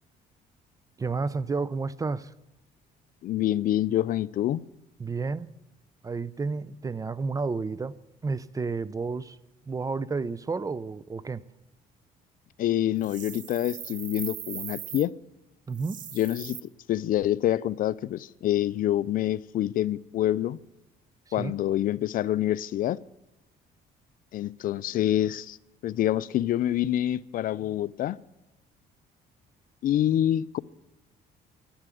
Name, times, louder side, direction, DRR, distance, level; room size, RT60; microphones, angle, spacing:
voice 1, 1.0-2.3 5.0-5.5 6.0-7.9 8.2-9.4 9.7-11.4 15.7-16.0 21.4-21.5, right 4 dB, 20° right, 0.5 m, -31 dB
voice 2, 3.2-4.6 12.6-15.1 16.1-16.6 16.9-20.6 21.3-23.0 24.3-25.6 25.8-28.2 29.8-30.6, left 12 dB, 55° left, 0.4 m, -26 dB
sound 1, 13.0-15.1 15.7-16.6, right 10 dB, 50° right, 0.8 m, -39 dB
11.5 x 11.0 x 9.2 m
cardioid pair, 110°, 17 cm